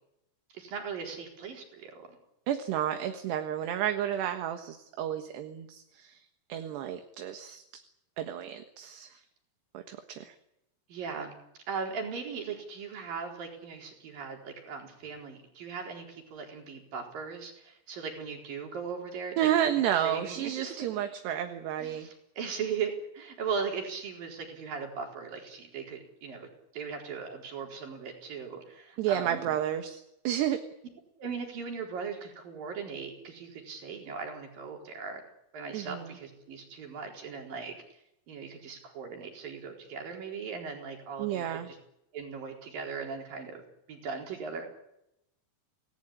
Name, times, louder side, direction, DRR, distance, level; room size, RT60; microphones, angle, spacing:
voice 1, 0.5-2.1 10.9-11.4 11.7-19.5 19.8-21.1 21.8-29.6 31.2-35.2 35.5-37.8 38.3-41.8 42.1-44.6, right 5 dB, 45° right, 2 dB, 5.7 m, -38 dB
voice 2, 2.5-6.2 6.5-7.6 8.2-9.2 9.7-10.3 19.4-22.1 29.0-30.6 35.7-36.1 41.2-41.7, right 10 dB, 65° right, 7 dB, 3.3 m, -31 dB
28.5 x 19.0 x 8.8 m, 0.84 s
omnidirectional pair, 5.8 m